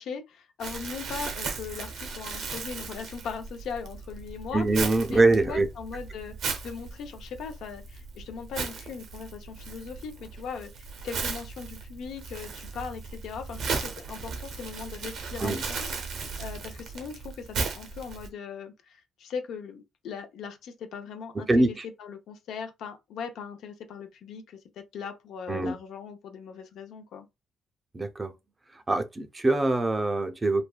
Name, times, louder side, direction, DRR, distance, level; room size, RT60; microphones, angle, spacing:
voice 1, 0.0-6.3 6.6-15.9 16.4-27.3, left 6 dB, 75° left, 0.5 m, -39 dB
Crumpling crinkling, 0.6-18.3, right 4 dB, 70° right, 0.7 m, -36 dB
voice 2, 4.5-5.7 15.4-15.6 21.5-21.8 25.5-25.8 27.9-28.3 28.9-30.6, right 2 dB, 25° right, 0.5 m, -24 dB
3.3 x 2.2 x 2.2 m
cardioid pair, 90°, 0 cm